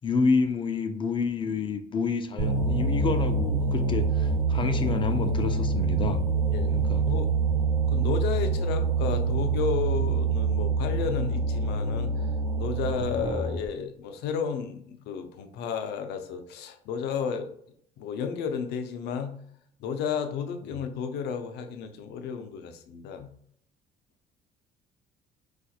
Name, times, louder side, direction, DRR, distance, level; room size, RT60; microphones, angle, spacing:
voice 1, 0.0-6.2 6.7-7.0, left 4 dB, 30° left, 8 dB, 0.4 m, -28 dB
sound 1, 2.4-13.7, right 4 dB, 70° right, 0.9 m, -26 dB
voice 2, 7.9-12.1 12.6-17.5 18.0-19.3 19.8-23.3, left 6 dB, 80° left, 7 dB, 0.5 m, -32 dB
4.1 x 2.4 x 2.3 m, 0.65 s
cardioid pair, 110°, 17 cm